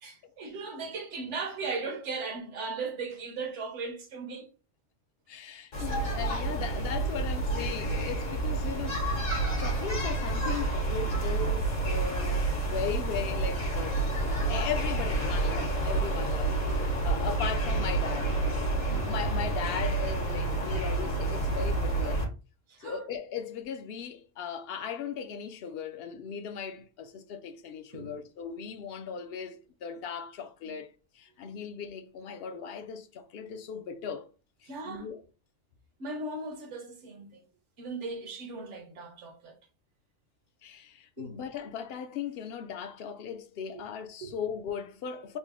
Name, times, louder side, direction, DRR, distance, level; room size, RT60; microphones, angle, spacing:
voice 1, 0.0-4.5 16.5-16.7 22.7-23.0 27.9-28.2 30.6-30.7 34.7-35.1 36.0-37.4 37.8-39.6 41.2-41.4 43.7-43.8 44.2-44.3, right 4 dB, 65° right, 1.2 m, -37 dB
voice 2, 5.3-18.4 18.9-22.2 22.8-34.3 34.6-35.2 40.6-45.4, left 7 dB, 60° left, 0.7 m, -38 dB
sound 1, 5.7-22.3, right 2 dB, 80° left, 1.7 m, -29 dB
3.9 x 2.1 x 3.6 m
omnidirectional pair, 1.3 m